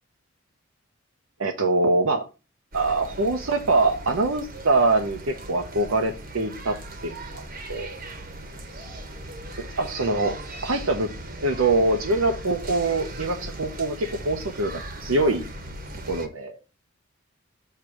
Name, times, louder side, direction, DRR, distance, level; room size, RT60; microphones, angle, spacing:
voice 1, 1.4-2.3 2.7-6.8 7.0-7.4 7.7-7.9 9.6-10.4 10.6-11.1 11.4-15.5 16.1-16.6, right 2 dB, 70° right, 4 dB, 0.8 m, -24 dB
sound 1, 2.7-16.3, right 1 dB, 40° right, 1.1 m, -38 dB
6.7 x 3.3 x 6.0 m, 0.29 s
head